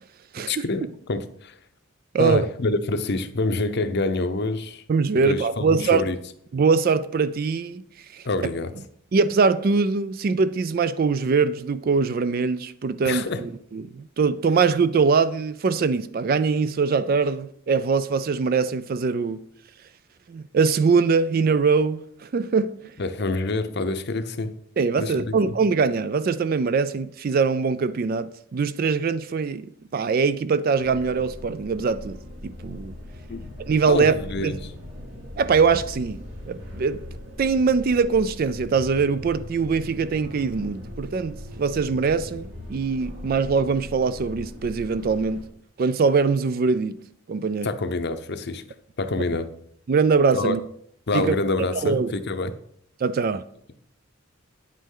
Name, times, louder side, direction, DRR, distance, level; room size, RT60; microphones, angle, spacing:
voice 1, 0.5-1.6 2.2-4.8 5.2-6.2 8.2-8.7 13.0-13.4 23.0-24.5 25.0-25.5 33.3-33.5 33.9-34.5 47.6-48.6 49.0-49.5 50.3-50.5 51.1-52.5, left 2 dB, 50° left, 0.7 m, -26 dB
voice 2, 4.9-6.1 6.5-7.8 8.1-8.3 9.1-19.4 20.3-22.7 24.8-32.9 33.6-34.2 34.4-34.6 35.4-36.2 36.5-37.0 37.4-45.4 45.8-47.0 47.3-47.7 49.9-50.6 51.1-51.3 51.8-52.1 53.0-53.4, right 5 dB, 45° right, 0.3 m, -22 dB
sound 1, 30.8-45.4, left 1 dB, 60° right, 3.2 m, -39 dB
8.9 x 8.2 x 3.8 m
head